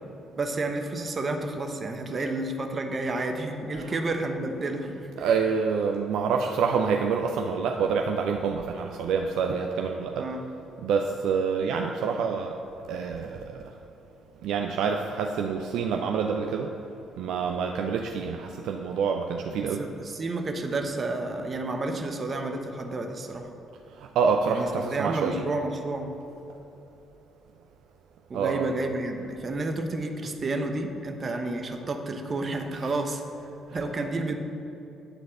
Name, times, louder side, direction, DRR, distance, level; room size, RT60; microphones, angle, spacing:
voice 1, 0.4-5.1 10.2-10.4 19.8-23.5 24.4-26.1 28.3-33.2 33.7-34.4, right 2 dB, 40° right, 4 dB, 1.0 m, -30 dB
voice 2, 5.2-10.3 10.8-12.5 12.9-13.7 14.4-16.7 17.2-19.9 24.0-25.5 28.3-28.7, right 5 dB, 65° right, 3 dB, 0.4 m, -27 dB
9.9 x 4.1 x 6.6 m, 3.0 s
hypercardioid pair, 45°, 0 cm